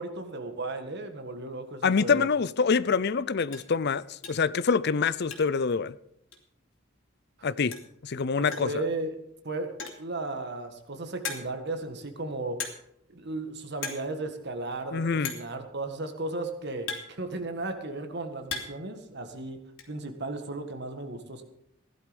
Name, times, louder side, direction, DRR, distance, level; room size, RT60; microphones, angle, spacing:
voice 1, 0.0-2.3 8.3-9.1 9.4-12.6 13.1-19.6 19.9-21.4, right 2 dB, 55° right, 1.8 m, -35 dB
voice 2, 1.8-5.9 7.4-7.8 8.0-8.8 14.9-15.3, left 5 dB, 55° left, 0.5 m, -26 dB
sound 1, 2.5-2.7 3.1-3.2 3.5-3.7 4.2-4.5 4.8-5.7 5.9-6.0 6.3-6.4 7.4-7.5 7.7-8.0 8.5-8.8 9.6-10.1 10.7-10.8 11.2-11.7 12.6-13.0 13.3-13.5 13.7-14.1 14.3-14.4 15.2-15.6 16.4-17.7 18.1-18.9 19.1-19.9, left 5 dB, 85° left, 3.0 m, -38 dB
16.0 x 11.5 x 5.2 m
head